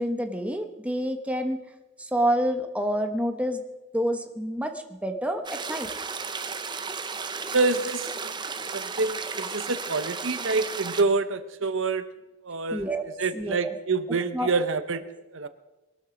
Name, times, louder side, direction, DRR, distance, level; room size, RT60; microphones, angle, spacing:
voice 1, 0.0-1.6 2.0-3.6 3.9-5.9 12.7-13.0 13.3-13.7 14.3-14.5, equal, 5° right, 5 dB, 1.2 m, -28 dB
sound 1, 5.4-11.0, right 5 dB, 20° right, 0.8 m, -34 dB
voice 2, 7.5-8.3 8.7-12.1 12.4-12.9 13.2-15.0 15.3-15.5, right 3 dB, 70° right, 12 dB, 0.8 m, -27 dB
22.0 x 13.0 x 5.2 m, 1.1 s
head